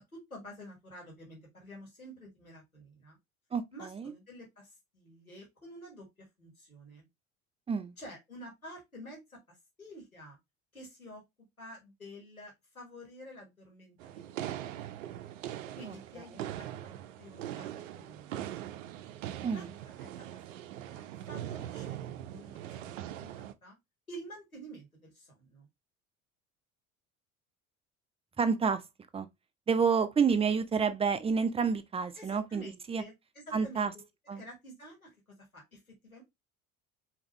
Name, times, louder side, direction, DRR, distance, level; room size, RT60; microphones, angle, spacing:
voice 1, 0.1-3.2 3.7-7.1 8.0-10.4 10.7-11.2 11.6-15.2 15.8-18.3 19.5-19.7 20.0-22.0 22.3-23.8 24.1-25.7 32.2-34.0 34.3-35.1 35.5-36.2, equal, 90° left, 1.7 m, -50 dB
voice 2, 3.5-4.1 7.7-7.9 15.9-16.0 19.4-19.7 28.4-28.8 29.1-29.3 29.7-33.0 33.5-33.9 34.3-34.4, right 6 dB, 15° right, 0.6 m, -29 dB
sound 1, 14.0-23.5, right 12 dB, 65° right, 0.6 m, -41 dB
5.1 x 3.0 x 3.0 m
figure-of-eight pair, 60°, 41 cm